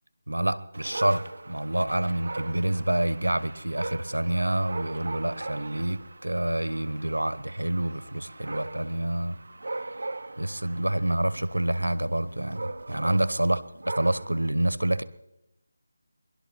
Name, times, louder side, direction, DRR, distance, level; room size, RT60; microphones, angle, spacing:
voice 1, 0.3-9.4 10.4-15.0, right 1 dB, 90° right, 1.1 m, -27 dB
Dog, 0.7-14.5, right 2 dB, 60° right, 0.8 m, -40 dB
21.0 x 12.0 x 4.2 m
figure-of-eight pair, 165°, 0 cm